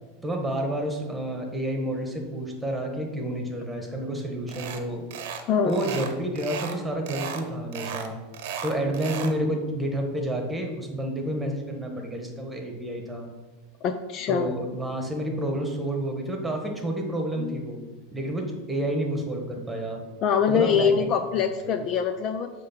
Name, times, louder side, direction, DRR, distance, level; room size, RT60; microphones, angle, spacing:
voice 1, 0.2-5.0 5.6-8.2 8.6-13.3 14.3-17.8 18.1-20.0 20.5-21.8, right 1 dB, 10° right, 2 dB, 1.4 m, -30 dB
sound 1, 4.5-4.8 5.1-5.4 5.7-6.8 7.1-7.4 7.7-9.4, right 7 dB, 70° right, 0.9 m, -35 dB
voice 2, 5.5-5.8 13.8-14.5 17.4-17.6 20.2-22.5, left 7 dB, 45° left, 8 dB, 0.5 m, -24 dB
7.8 x 3.2 x 5.9 m, 1.2 s
supercardioid pair, 120°, 0 cm